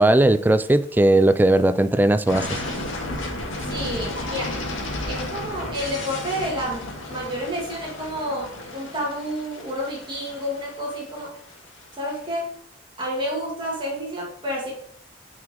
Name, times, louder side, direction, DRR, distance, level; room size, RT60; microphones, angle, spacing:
voice 1, 0.0-2.6, right 1 dB, 10° right, 12 dB, 0.3 m, -18 dB
sound 1, 2.3-12.1, left 1 dB, 80° left, 2.0 m, -33 dB
voice 2, 3.6-4.6 5.1-6.8 7.1-11.4 12.0-12.6 13.0-14.7, equal, 25° right, -3 dB, 2.1 m, -30 dB
9.5 x 4.9 x 3.6 m, 0.62 s
head